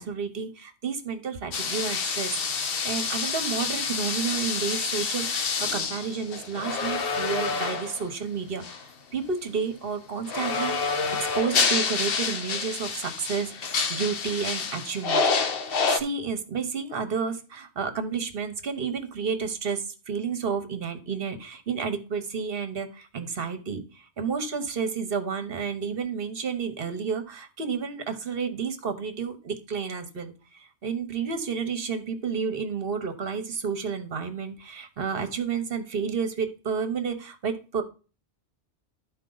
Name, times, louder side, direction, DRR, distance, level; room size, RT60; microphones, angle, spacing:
voice 1, 0.0-8.8 9.1-10.8 11.1-15.3 15.6-37.8, right 6 dB, 55° right, 9 dB, 1.1 m, -31 dB
sound 1, 1.5-8.1 8.6-8.8 10.3-16.0, left 5 dB, 55° left, 0.9 m, -28 dB
11.5 x 4.3 x 3.9 m, 0.34 s
omnidirectional pair, 1.2 m